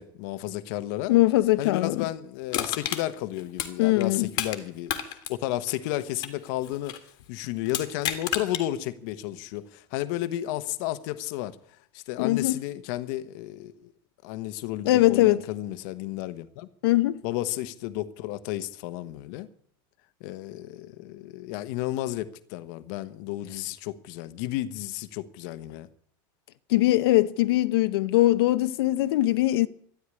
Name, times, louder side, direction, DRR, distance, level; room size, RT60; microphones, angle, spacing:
voice 1, 0.0-1.1 1.6-11.6 11.9-13.9 14.2-16.7 17.2-19.5 20.2-25.9, left 14 dB, 55° left, 1.1 m, -33 dB
voice 2, 1.1-2.0 3.8-4.3 12.2-12.6 14.8-15.4 16.8-17.2 26.7-29.7, left 16 dB, 90° left, 0.8 m, -21 dB
Crushing, 2.5-4.6 4.9-7.1 7.7-8.6 9.1-9.2, left 11 dB, 35° left, 1.8 m, -32 dB
13.0 x 11.5 x 9.7 m
supercardioid pair, 175°, 12 cm